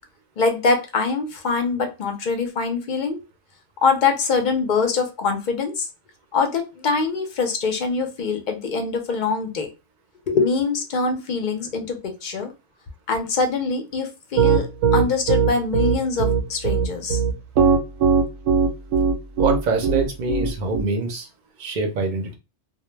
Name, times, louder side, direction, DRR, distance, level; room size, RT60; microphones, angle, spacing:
voice 1, 0.4-3.2 3.8-5.9 6.3-9.7 10.3-12.5 13.1-17.2, left 4 dB, 55° left, 5 dB, 0.5 m, -23 dB
Piano, 14.4-20.8, right 6 dB, 80° right, 0.9 m, -18 dB
voice 2, 19.4-21.3 21.6-22.4, right 3 dB, 50° right, 4 dB, 0.6 m, -24 dB
2.2 x 2.0 x 3.0 m, 0.27 s
omnidirectional pair, 1.2 m